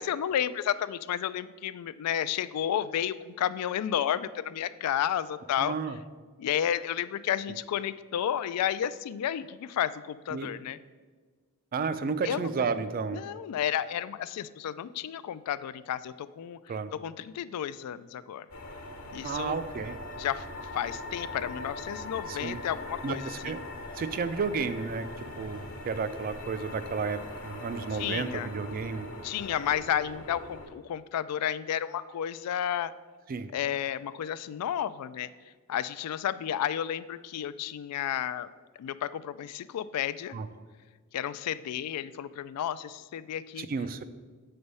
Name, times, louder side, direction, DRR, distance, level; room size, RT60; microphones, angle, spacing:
voice 1, 0.0-5.8 6.4-10.8 12.2-12.5 13.1-16.6 16.9-18.5 19.1-19.6 20.2-20.5 20.7-23.5 27.9-28.5 29.2-32.9 33.5-35.3 35.7-38.5 38.8-40.4 41.1-43.7, left 10 dB, 90° left, 16 dB, 0.3 m, -32 dB
voice 2, 5.6-6.0 10.3-10.5 11.7-13.2 16.7-16.9 19.2-20.0 22.3-22.6 23.0-23.6 24.0-29.1 33.3-33.5 40.3-40.5 43.6-44.0, right 5 dB, 40° right, 12 dB, 0.3 m, -32 dB
sound 1, 18.5-30.7, left 2 dB, 75° left, 1.1 m, -41 dB
7.9 x 3.3 x 5.3 m, 1.4 s
head